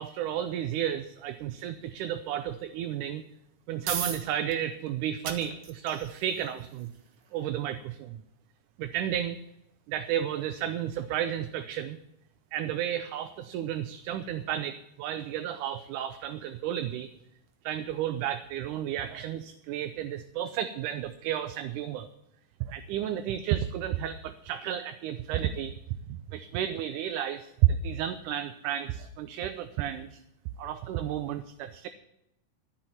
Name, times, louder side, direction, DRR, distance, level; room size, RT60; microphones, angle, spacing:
voice 1, 0.0-3.2 3.7-6.9 7.3-8.2 8.8-9.4 9.9-12.0 12.5-17.1 17.6-22.1 22.6-25.7 26.1-30.2 30.6-31.9, right 10 dB, 90° right, 9 dB, 2.2 m, -32 dB
sound 1, 3.4-18.2, right 6 dB, 75° right, 2.9 m, -45 dB
14.0 x 6.2 x 8.8 m, 0.84 s
omnidirectional pair, 3.5 m